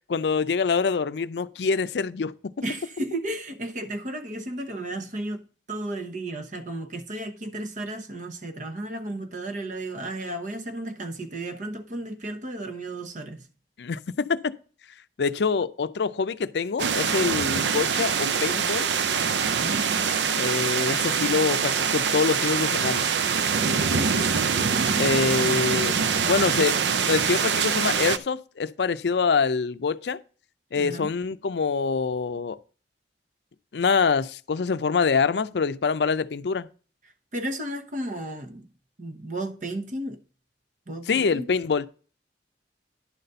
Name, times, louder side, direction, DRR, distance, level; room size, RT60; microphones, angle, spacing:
voice 1, 0.1-2.5 13.8-14.5 15.2-18.9 20.4-23.1 25.0-25.9 26.3-26.8 27.1-30.2 30.7-32.6 33.7-36.7 41.1-41.9, left 5 dB, 70° left, 0.5 m, -25 dB
voice 2, 2.6-13.5 19.4-19.8 23.9-25.6 30.8-31.1 37.3-38.7 39.0-40.2 40.9-41.5, right 1 dB, 45° right, 1.0 m, -34 dB
sound 1, 16.8-28.2, right 6 dB, 80° right, 0.6 m, -24 dB
11.0 x 4.1 x 6.7 m
head